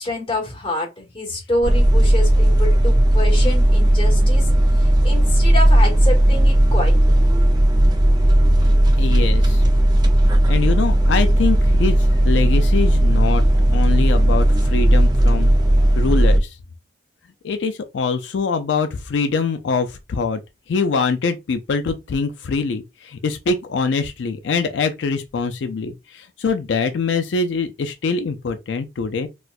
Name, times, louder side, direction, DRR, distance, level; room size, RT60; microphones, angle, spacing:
voice 1, 0.0-4.5 4.8-7.1, left 1 dB, 30° left, 1.2 m, -27 dB
sound 1, 1.6-16.4, right 1 dB, 25° right, 0.5 m, -15 dB
voice 2, 9.0-9.6 10.5-13.4 13.7-15.5 15.9-16.6 17.4-20.4 20.7-29.3, left 4 dB, 85° left, 0.4 m, -23 dB
4.2 x 2.2 x 2.3 m
head